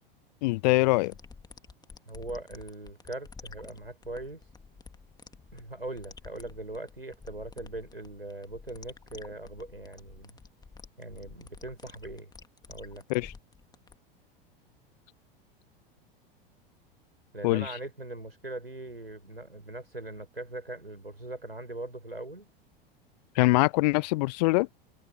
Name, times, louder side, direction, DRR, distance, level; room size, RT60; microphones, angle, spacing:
voice 1, 0.4-1.1 13.1-13.3 17.4-17.7 23.4-24.7, left 22 dB, 45° left, 0.4 m, -23 dB
sound 1, 1.0-13.9, left 5 dB, 15° left, 2.1 m, -50 dB
voice 2, 2.0-4.4 5.5-10.4 11.0-12.3 12.7-13.0 17.3-22.5, right 2 dB, 90° right, 5.1 m, -40 dB
figure-of-eight pair, 85°, 29 cm